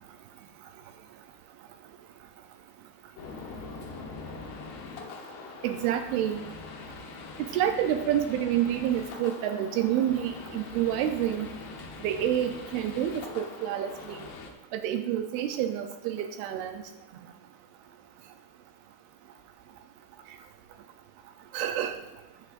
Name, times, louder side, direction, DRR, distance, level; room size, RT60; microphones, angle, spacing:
sound 1, 3.2-14.5, left 4 dB, 70° left, 2.9 m, -43 dB
voice 1, 5.6-6.4 7.5-11.5 12.0-14.2 14.7-16.8 21.5-22.0, right 10 dB, 85° right, 7 dB, 2.2 m, -28 dB
19.5 x 6.7 x 2.5 m, 1.1 s
omnidirectional pair, 5.1 m